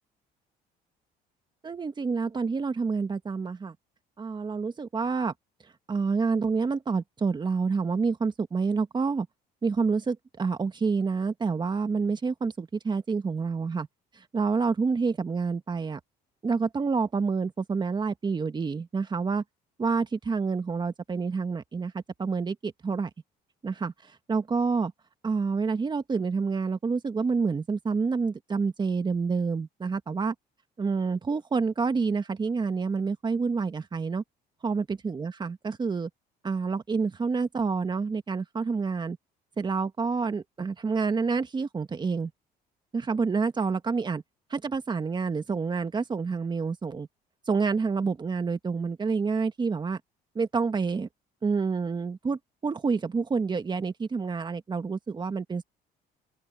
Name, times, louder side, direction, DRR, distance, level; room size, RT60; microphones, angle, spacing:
voice 1, 1.6-3.8 4.2-5.3 5.9-9.3 9.6-13.9 14.2-16.0 16.4-19.4 19.8-23.1 23.6-23.9 24.3-24.9 25.2-30.3 30.8-34.2 34.6-36.1 36.4-39.2 39.6-42.3 42.9-44.2 44.5-47.1 47.5-50.0 50.4-51.1 51.4-55.6, right 4 dB, 25° right, 1.8 m, -28 dB
open air
cardioid pair, 110°, 17 cm